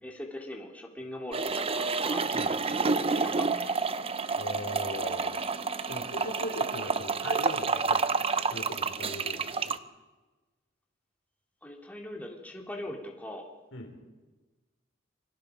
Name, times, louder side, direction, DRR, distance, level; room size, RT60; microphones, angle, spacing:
voice 1, 0.0-2.8 3.0-3.7 11.6-13.5, left 1 dB, 10° left, 0 dB, 3.3 m, -41 dB
sound 1, 1.3-9.8, right 4 dB, 30° right, 0.9 m, -29 dB
voice 2, 4.4-9.8 13.7-13.9, left 1 dB, 85° left, 3 dB, 5.1 m, -40 dB
28.0 x 24.5 x 5.2 m, 1.2 s
head